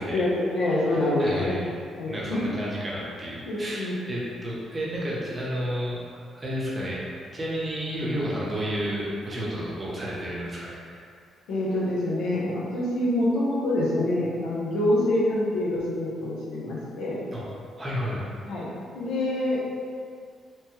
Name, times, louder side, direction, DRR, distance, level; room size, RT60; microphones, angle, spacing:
voice 1, 0.1-1.6 1.9-2.4 3.5-4.0 11.5-17.2 18.4-18.7 18.9-19.6, left 1 dB, 85° left, -6 dB, 0.7 m, -26 dB
voice 2, 0.9-1.6 2.1-7.0 7.3-11.1 17.3-17.4 17.8-18.2, equal, 25° right, -6 dB, 0.7 m, -31 dB
3.0 x 2.2 x 3.0 m, 2.3 s
cardioid pair, 90°, 0 cm